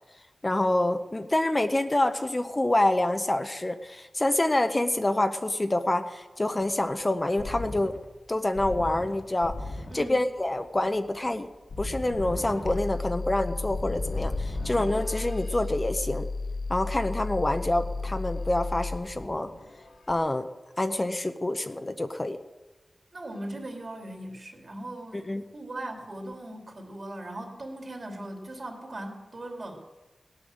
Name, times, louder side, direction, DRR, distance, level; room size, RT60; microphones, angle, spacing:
voice 1, 0.4-8.0 8.3-9.5 9.9-11.5 11.8-16.3 16.7-19.5 20.1-20.5 20.8-22.4 25.3-25.4, left 1 dB, 25° left, 8 dB, 0.7 m, -27 dB
sound 1, 6.7-15.6 17.5-18.7 19.0-20.1, left 2 dB, 80° left, 1.9 m, -38 dB
sound 2, 12.6-19.0, left 3 dB, 45° left, 1.1 m, -33 dB
voice 2, 23.1-29.8, right 1 dB, 45° right, 2 dB, 2.8 m, -39 dB
18.5 x 8.7 x 6.4 m, 1.2 s
wide cardioid pair, 100°, 0 cm